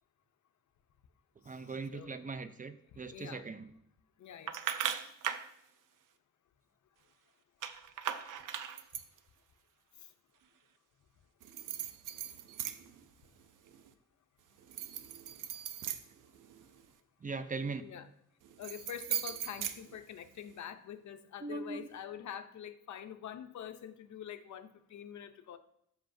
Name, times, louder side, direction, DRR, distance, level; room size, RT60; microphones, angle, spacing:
voice 1, 1.5-3.7 17.2-17.8 21.4-21.9, right 4 dB, 25° right, 11 dB, 0.4 m, -40 dB
voice 2, 3.0-3.5 4.2-4.5 4.8-5.1 17.8-18.1 18.6-25.6, left 9 dB, 70° left, 9 dB, 0.7 m, -46 dB
sound 1, 4.5-5.5 7.6-9.2 11.4-13.0 13.4-13.9 14.6-16.9 18.4-20.5, right 9 dB, 85° right, 0.6 m, -39 dB
13.0 x 5.6 x 2.6 m, 0.73 s
cardioid pair, 115°, 30 cm